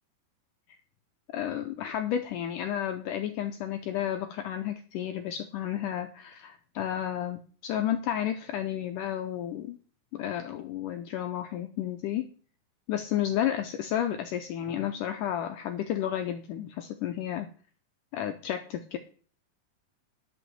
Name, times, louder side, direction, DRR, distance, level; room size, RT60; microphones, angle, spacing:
voice 1, 1.3-9.8 10.1-12.3 12.9-17.5 18.1-19.0, left 11 dB, 85° left, 8 dB, 1.8 m, -32 dB
11.0 x 6.2 x 7.8 m, 0.43 s
omnidirectional pair, 4.5 m